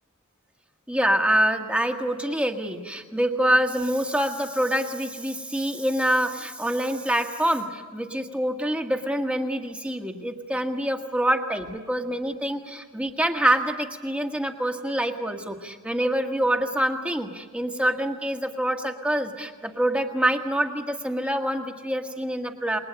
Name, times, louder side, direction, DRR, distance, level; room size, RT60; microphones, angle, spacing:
voice 1, 0.9-22.8, right 1 dB, 5° right, 4 dB, 1.6 m, -26 dB
28.0 x 21.0 x 8.7 m, 1.4 s
head